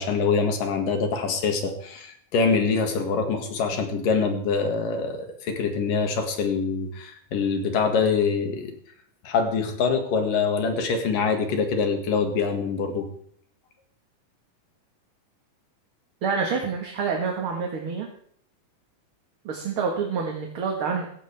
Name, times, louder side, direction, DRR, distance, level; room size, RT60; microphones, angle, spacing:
voice 1, 0.0-8.7 9.2-13.1, left 5 dB, 90° left, 4 dB, 3.6 m, -24 dB
voice 2, 16.2-18.1 19.5-21.0, right 5 dB, 50° right, 1 dB, 2.1 m, -27 dB
16.5 x 15.5 x 3.5 m, 0.62 s
omnidirectional pair, 3.7 m